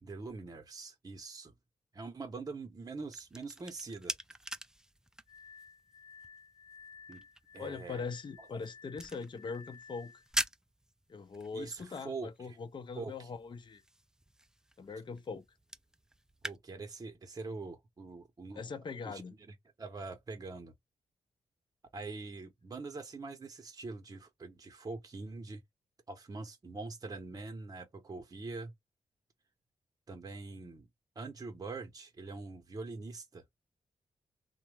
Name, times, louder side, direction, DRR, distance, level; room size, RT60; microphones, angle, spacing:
voice 1, 0.0-1.5 1.9-4.1 7.1-7.2 7.5-8.0 8.4-8.5 11.5-12.6 12.9-13.3 16.4-18.6 19.0-20.7 21.9-25.6 26.1-28.7 30.1-30.9 31.2-33.4, right 3 dB, 35° right, 0.8 m, -44 dB
sound 1, 2.8-16.6, right 1 dB, 5° right, 0.4 m, -45 dB
Glass, 5.3-10.3, left 6 dB, 80° left, 0.8 m, -55 dB
voice 2, 7.6-10.1 11.1-13.8 14.8-15.4 18.5-19.3, left 4 dB, 45° left, 0.6 m, -41 dB
2.7 x 2.1 x 3.2 m
cardioid pair, 65°, 11 cm